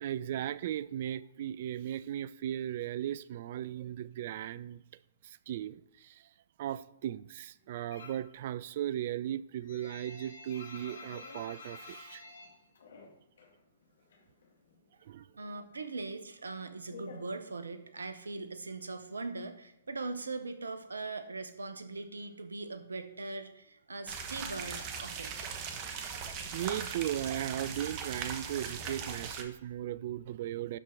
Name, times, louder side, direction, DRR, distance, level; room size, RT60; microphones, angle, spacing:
voice 1, 0.0-4.8 5.2-6.2 6.6-12.2 15.1-15.2 26.2-30.8, right 11 dB, 50° right, 0.3 m, -37 dB
sound 1, 7.9-8.3 8.7-13.6 13.8-14.9 15.2-18.0, left 3 dB, 65° left, 1.7 m, -50 dB
voice 2, 15.4-25.3, right 3 dB, 80° right, 0.9 m, -40 dB
sound 2, 24.1-29.4, right 6 dB, 35° right, 1.1 m, -39 dB
12.0 x 4.4 x 3.8 m
figure-of-eight pair, 120°, 0 cm